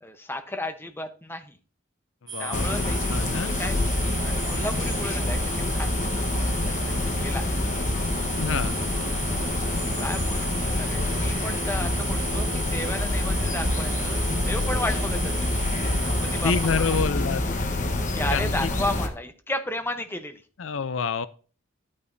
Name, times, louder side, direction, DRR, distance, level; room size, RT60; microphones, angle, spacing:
voice 1, 0.0-1.6 2.4-3.8 4.2-6.6 7.0-7.5 9.4-9.5 10.0-14.2 14.5-15.5 16.0-17.0 18.1-20.4, left 1 dB, 10° left, 6 dB, 0.8 m, -34 dB
voice 2, 2.3-2.7 3.1-3.6 8.4-8.7 16.4-17.4 17.8-17.9 18.3-18.7 20.6-21.3, left 5 dB, 70° left, 15 dB, 0.5 m, -27 dB
sound 1, 2.3-17.0, right 4 dB, 20° right, 3.5 m, -36 dB
sound 2, 2.5-19.1, left 2 dB, 35° left, 1.1 m, -26 dB
11.0 x 8.6 x 2.7 m, 0.38 s
head